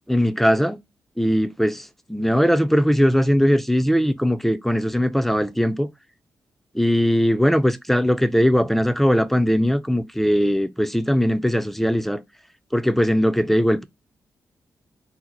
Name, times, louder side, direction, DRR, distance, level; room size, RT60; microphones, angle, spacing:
voice 1, 0.1-0.8 1.2-5.9 6.7-12.2 12.7-13.8, equal, 5° left, 0.4 m, -20 dB
2.7 x 2.0 x 3.8 m
supercardioid pair, 40°, 7 cm